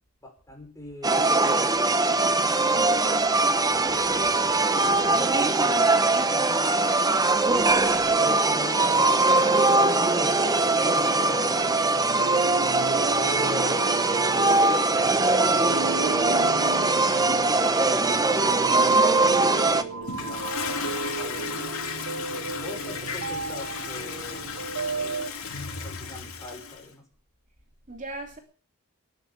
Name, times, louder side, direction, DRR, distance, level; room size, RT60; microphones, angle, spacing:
voice 1, 0.2-2.3 3.9-6.0 6.3-7.2 8.2-15.6 15.9-16.8 17.5-21.6 22.3-24.7 25.0-25.2 25.8-27.0, left 1 dB, 15° left, 2 dB, 6.1 m, -42 dB
sound 1, 1.0-19.8, right 3 dB, 15° right, 1.0 m, -21 dB
voice 2, 2.7-3.3 3.9-4.4 7.7-8.2 27.9-28.4, right 1 dB, 35° right, 3 dB, 3.0 m, -40 dB
sound 2, 9.6-25.3, right 4 dB, 80° right, 0.9 m, -35 dB
Toilet flush, 20.0-26.9, left 5 dB, 70° left, 3.3 m, -34 dB
14.5 x 11.0 x 8.8 m, 0.41 s
head